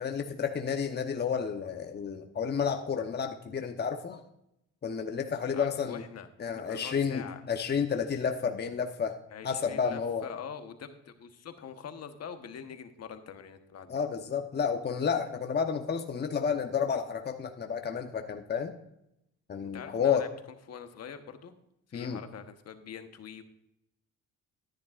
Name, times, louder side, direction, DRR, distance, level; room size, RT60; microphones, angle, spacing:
voice 1, 0.0-4.2 4.8-6.0 6.4-9.2 9.4-10.2 13.9-18.7 19.5-20.3 21.9-22.2, left 6 dB, 35° left, 5 dB, 0.9 m, -31 dB
voice 2, 5.5-6.3 6.5-7.4 9.3-14.0 19.7-20.3 20.7-21.5 21.9-23.4, left 7 dB, 55° left, 7 dB, 1.2 m, -44 dB
13.5 x 10.0 x 2.5 m, 0.81 s
cardioid pair, 90°, 30 cm